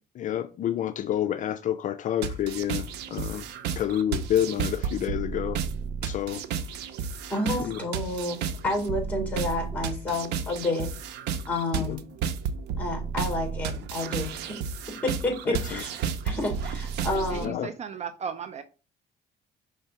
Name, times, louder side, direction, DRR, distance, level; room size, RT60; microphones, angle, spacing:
voice 1, 0.1-3.5 3.8-5.6 6.0-6.4 7.6-7.8 11.7-12.0 15.5-15.8 17.3-17.7, left 11 dB, 50° left, 0.4 m, -29 dB
sound 1, 2.2-17.5, right 6 dB, 85° right, 0.7 m, -32 dB
voice 2, 7.3-10.9 11.5-12.0 12.8-14.3 15.0-15.9 16.2-17.6, left 2 dB, 10° left, 3.5 m, -30 dB
voice 3, 17.1-18.6, right 7 dB, 40° right, 0.5 m, -36 dB
5.7 x 3.4 x 5.5 m
cardioid pair, 110°, 17 cm